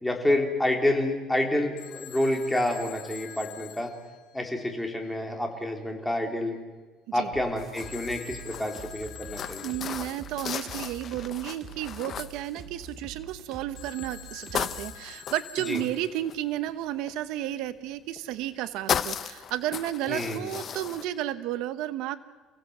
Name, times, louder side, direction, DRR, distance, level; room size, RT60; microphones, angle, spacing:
voice 1, 0.0-3.9 4.3-6.6 7.1-9.7 15.6-15.8 20.1-20.5, left 1 dB, 5° left, 2 dB, 3.3 m, -28 dB
Telephone, 1.8-4.9 7.8-10.3 13.8-16.4, left 14 dB, 75° left, 3.8 m, -46 dB
sound 1, 7.3-14.9, right 5 dB, 30° right, 2.3 m, -45 dB
sound 2, 7.6-13.2 13.7-14.2 14.5-17.1 18.2-18.6 18.9-21.1, left 8 dB, 35° left, 0.8 m, -35 dB
voice 2, 9.6-22.2, right 13 dB, 70° right, 12 dB, 1.0 m, -32 dB
29.5 x 17.0 x 7.9 m, 1.4 s
cardioid pair, 160°, 0 cm